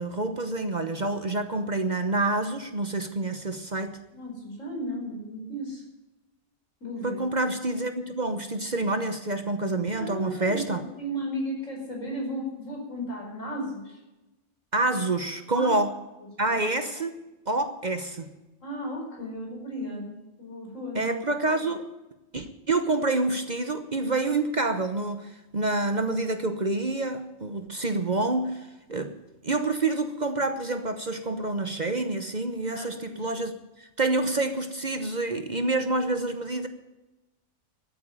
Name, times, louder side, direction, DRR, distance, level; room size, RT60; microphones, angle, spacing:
voice 1, 0.0-4.0 7.0-10.8 14.7-15.9 16.4-17.2 17.5-18.3 20.9-21.9 22.3-29.1 29.4-36.7, right 2 dB, 40° right, 8 dB, 1.0 m, -27 dB
voice 2, 4.1-5.8 6.8-7.2 10.0-14.0 15.5-15.7 16.5-16.6 18.6-21.1 32.7-33.2, equal, 75° left, -1 dB, 5.4 m, -35 dB
12.5 x 9.3 x 9.0 m, 1.0 s
omnidirectional pair, 1.3 m